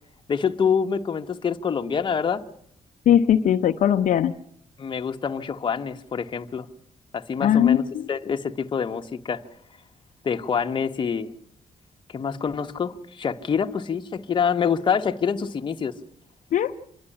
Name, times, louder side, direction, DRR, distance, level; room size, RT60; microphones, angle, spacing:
voice 1, 0.3-2.4 4.8-6.7 7.1-9.4 10.2-11.3 12.1-15.9, left 6 dB, 35° left, 1.1 m, -26 dB
voice 2, 3.1-4.3 7.4-8.1 16.5-16.7, left 9 dB, 70° left, 0.8 m, -19 dB
27.0 x 11.5 x 9.9 m
wide cardioid pair, 165°, 14 cm